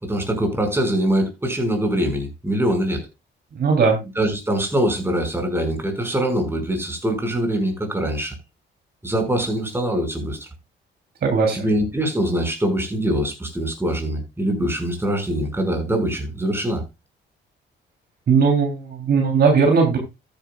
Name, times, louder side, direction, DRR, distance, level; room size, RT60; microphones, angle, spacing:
voice 1, 0.0-3.0 4.2-8.3 9.0-10.4 11.5-16.8, right 1 dB, 10° right, 5.6 m, -23 dB
voice 2, 3.6-4.0 11.2-11.7 18.3-20.0, right 5 dB, 55° right, 3.4 m, -18 dB
13.5 x 10.5 x 2.4 m
cardioid pair, 90°, 20 cm